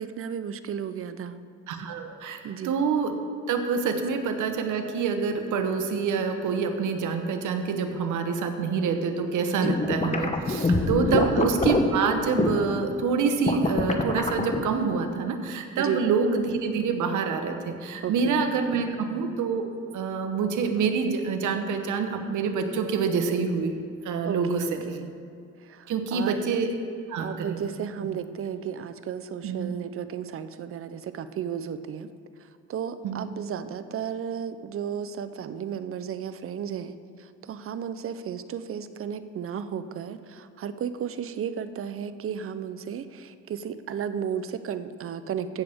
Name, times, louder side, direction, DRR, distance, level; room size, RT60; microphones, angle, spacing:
voice 1, 0.0-1.4 2.4-2.7 9.6-9.8 10.6-11.4 15.8-16.1 18.0-18.6 24.3-25.1 25.6-26.6 27.2-32.1 32.4-45.6, right 8 dB, 45° right, 12 dB, 0.6 m, -34 dB
voice 2, 1.7-3.1 3.5-19.7 19.9-23.7 24.0-24.8 25.9-26.7 27.1-27.6 29.4-29.7 33.0-33.3, right 5 dB, 80° right, 6 dB, 1.0 m, -26 dB
sound 1, 9.6-12.7 13.3-14.7, left 2 dB, 25° left, 0.9 m, -25 dB
15.5 x 6.8 x 3.5 m, 2.4 s
cardioid pair, 90°, 30 cm